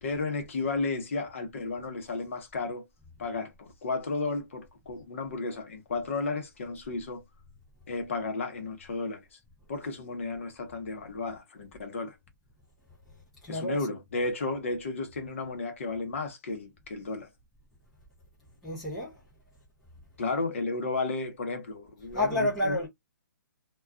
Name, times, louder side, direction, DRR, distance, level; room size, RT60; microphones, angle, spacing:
voice 1, 0.0-2.9 3.2-7.2 7.9-9.4 9.7-12.2 13.5-17.3 20.2-22.8, left 3 dB, 40° left, 0.7 m, -33 dB
voice 2, 13.4-13.9 18.6-19.2 22.1-22.9, left 1 dB, ahead, 0.4 m, -29 dB
2.3 x 2.3 x 3.5 m
hypercardioid pair, 175°, 11 cm